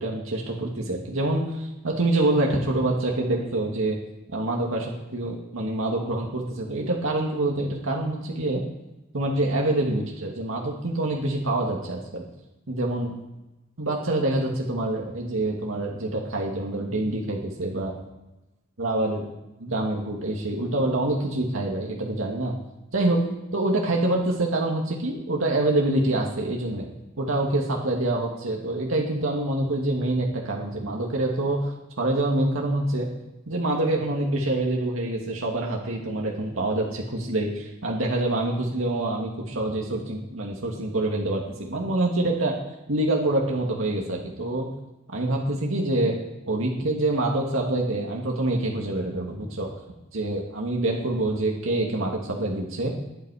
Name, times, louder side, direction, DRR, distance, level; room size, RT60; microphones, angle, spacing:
voice 1, 0.0-4.0 4.3-8.6 9.1-12.3 12.7-13.1 13.8-17.9 18.8-19.2 19.6-22.6 22.9-23.2 23.5-26.9 27.2-33.1 33.5-42.6 42.9-44.7 45.1-46.2 46.5-49.7 50.1-52.9, right 2 dB, 80° right, -1 dB, 1.9 m, -26 dB
20.0 x 8.2 x 4.9 m, 0.99 s
head